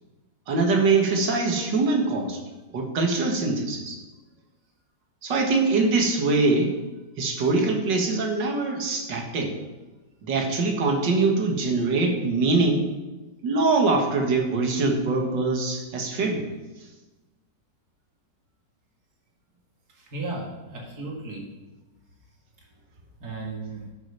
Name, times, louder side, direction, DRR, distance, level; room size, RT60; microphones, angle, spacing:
voice 1, 0.5-2.4 2.7-4.0 5.2-6.7 7.2-9.5 10.2-12.9 13.4-16.5, right 3 dB, 85° right, 2 dB, 2.3 m, -23 dB
voice 2, 19.9-21.4 23.2-23.8, right 3 dB, 60° right, -2 dB, 2.7 m, -35 dB
12.0 x 6.4 x 5.8 m, 1.1 s
omnidirectional pair, 1.9 m